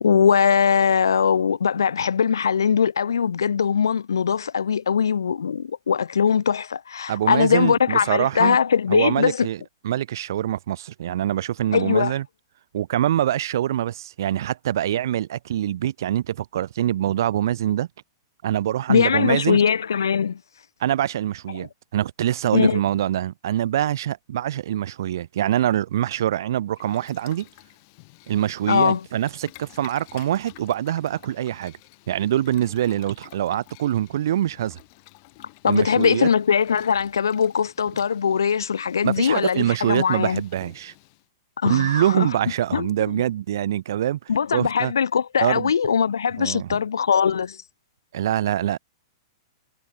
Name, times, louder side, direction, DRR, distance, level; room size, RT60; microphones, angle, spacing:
voice 1, 0.0-9.5 11.7-12.1 18.9-20.4 21.5-21.7 22.5-22.8 28.7-29.0 35.6-40.4 41.6-42.3 42.7-42.9 44.3-47.6, left 7 dB, 85° left, 0.3 m, -21 dB
voice 2, 7.1-8.6 8.9-12.2 12.7-17.9 18.4-19.6 20.8-27.5 28.3-31.7 32.1-34.8 35.6-36.3 39.0-40.9 41.6-44.2 44.5-44.9 45.4-45.7 46.4-46.8 48.1-48.8, right 11 dB, 70° right, 0.5 m, -24 dB
Boiling, 26.7-41.3, left 29 dB, 50° left, 4.5 m, -51 dB
hypercardioid pair, 120°, 2 cm